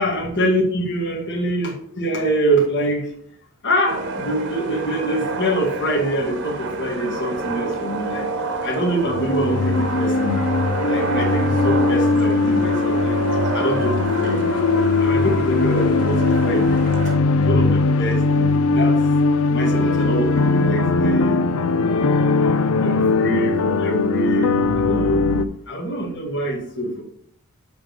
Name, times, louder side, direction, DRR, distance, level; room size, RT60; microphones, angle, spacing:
voice 1, 0.0-3.1 3.6-8.3 8.6-10.5 10.8-13.2 13.5-14.6 15.0-16.8 17.4-19.0 19.5-21.4 21.8-25.2 25.7-27.0, right 1 dB, 55° left, -2 dB, 1.9 m, -25 dB
sound 1, 3.9-17.2, right 3 dB, 55° right, 1.2 m, -28 dB
sound 2, 9.1-25.4, left 3 dB, 70° left, 0.5 m, -19 dB
9.2 x 3.4 x 6.6 m, 0.64 s
head